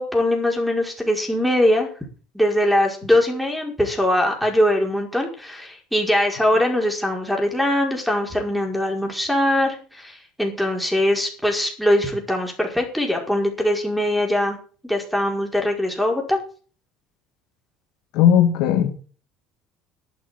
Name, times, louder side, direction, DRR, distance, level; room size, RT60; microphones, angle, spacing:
voice 1, 0.0-1.9 2.3-16.4, left 1 dB, ahead, 5.1 m, -22 dB
voice 2, 18.1-18.9, left 9 dB, 70° left, 2.3 m, -16 dB
12.0 x 7.7 x 8.4 m
supercardioid pair, 105°, 0 cm